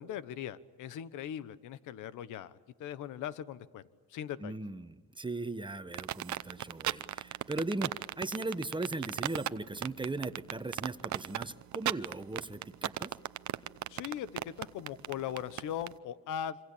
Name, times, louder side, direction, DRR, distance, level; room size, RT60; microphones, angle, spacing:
voice 1, 0.0-4.6 13.9-16.6, left 10 dB, 90° left, 14 dB, 1.2 m, -40 dB
voice 2, 4.4-13.1, right 2 dB, 15° right, 11 dB, 1.3 m, -38 dB
sound 1, 5.9-15.9, right 13 dB, 70° right, 0.9 m, -35 dB
27.0 x 25.5 x 8.6 m, 1.3 s
cardioid pair, 90°, 30 cm